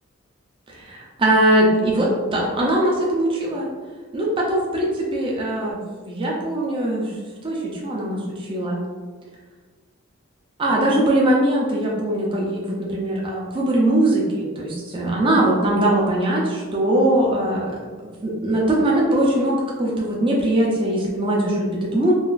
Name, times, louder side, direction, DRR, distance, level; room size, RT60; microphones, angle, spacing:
voice 1, 0.7-3.7 4.1-5.8 6.0-7.1 7.4-8.8 10.6-17.7 18.0-22.1, right 1 dB, 25° right, -3 dB, 0.5 m, -21 dB
3.8 x 2.4 x 2.4 m, 1.5 s
head